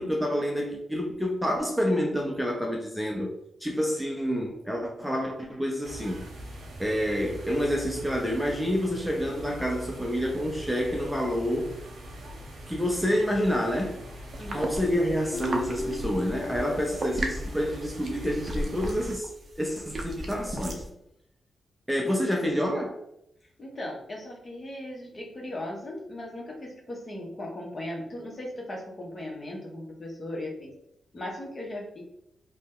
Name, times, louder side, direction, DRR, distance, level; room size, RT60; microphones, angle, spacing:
voice 1, 0.0-3.3 3.6-6.2 6.8-11.7 12.7-14.0 14.5-19.3 19.6-20.9 21.9-23.0, equal, ahead, 0 dB, 0.5 m, -28 dB
sound 1, 5.8-19.2, right 1 dB, 80° right, 0.8 m, -43 dB
sound 2, 14.3-20.9, right 1 dB, 45° right, 0.6 m, -36 dB
voice 2, 14.4-14.7 23.6-30.7 31.1-32.0, left 1 dB, 40° left, -1 dB, 0.9 m, -37 dB
Guitar, 15.3-18.6, left 2 dB, 65° left, 0.6 m, -38 dB
2.8 x 2.1 x 3.6 m, 0.78 s
cardioid pair, 75°, 0 cm